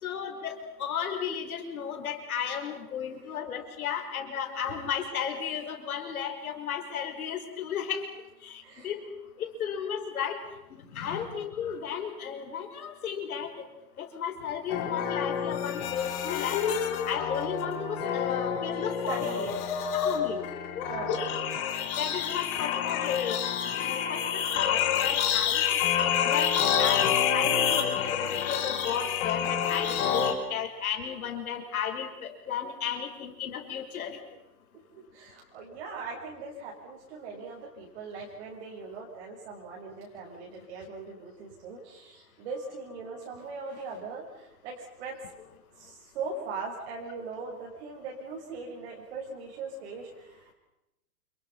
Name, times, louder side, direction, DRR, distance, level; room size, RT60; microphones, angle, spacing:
voice 1, 0.0-8.0 8.4-9.0 9.4-10.4 10.7-13.5 14.0-16.6 17.1-19.3 19.9-20.4 20.7-20.9 22.0-23.4 23.6-25.6 26.2-27.1 27.3-34.2, left 8 dB, 60° left, 4 dB, 5.8 m, -34 dB
sound 1, 14.7-30.3, left 8 dB, 25° left, 4.1 m, -28 dB
voice 2, 19.1-19.7 20.9-21.3 34.9-45.2 45.8-50.5, right 4 dB, 40° right, -2 dB, 6.7 m, -40 dB
29.0 x 29.0 x 5.8 m, 0.93 s
hypercardioid pair, 165°, 48 cm